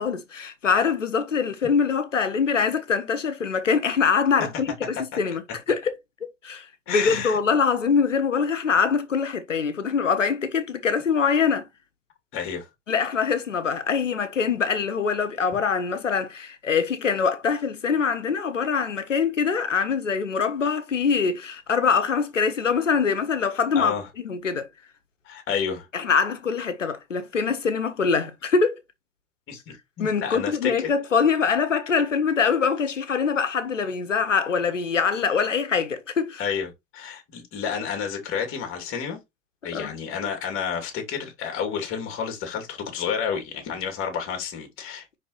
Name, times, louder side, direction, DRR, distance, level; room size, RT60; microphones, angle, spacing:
voice 1, 0.0-5.4 5.7-11.7 12.9-23.9 24.2-24.7 25.9-28.8 30.0-36.4 39.7-39.9, left 6 dB, 80° left, 1.3 m, -24 dB
voice 2, 6.9-7.4 12.3-12.7 23.7-24.1 25.3-25.9 29.5-30.9 36.4-39.2 39.6-45.2, left 7 dB, 35° left, 2.6 m, -30 dB
10.0 x 4.1 x 3.0 m
figure-of-eight pair, 85°, 37 cm